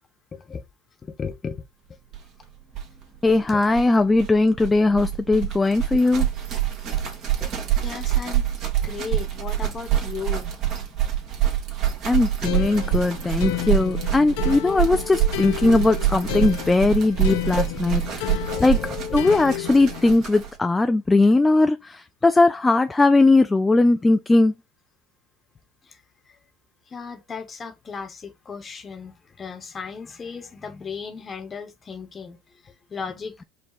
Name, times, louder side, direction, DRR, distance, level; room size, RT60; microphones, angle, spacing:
voice 1, 0.3-0.6 1.2-1.6 3.5-3.6 7.4-7.5 7.8-8.5 8.8-10.5 17.5-17.6 18.5-19.0 25.9-26.0 26.9-32.4 32.9-33.4, left 5 dB, 30° left, 1.2 m, -34 dB
sound 1, 2.1-2.2 2.4-2.5 2.7-20.6, right 12 dB, 50° right, 1.6 m, -26 dB
voice 2, 3.2-6.3 12.0-18.8 19.1-24.5, left 2 dB, 15° left, 0.4 m, -19 dB
sound 2, 12.4-20.1, left 15 dB, 70° left, 0.5 m, -32 dB
5.0 x 2.3 x 4.0 m
hypercardioid pair, 80°, 0 cm